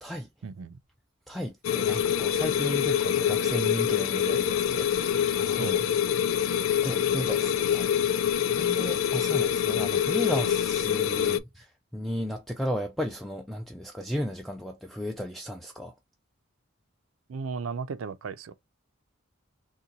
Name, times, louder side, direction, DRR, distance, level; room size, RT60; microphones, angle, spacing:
voice 1, 0.4-0.8 1.9-2.1 5.6-5.8 9.9-10.0 10.4-10.5 11.2-11.4 17.3-18.5, right 5 dB, 90° right, 0.4 m, -36 dB
voice 2, 1.3-5.8 6.8-7.9 8.6-15.9, equal, ahead, 0.3 m, -34 dB
sound 1, 1.6-11.4, left 9 dB, 75° left, 0.3 m, -25 dB
3.8 x 2.2 x 2.8 m
head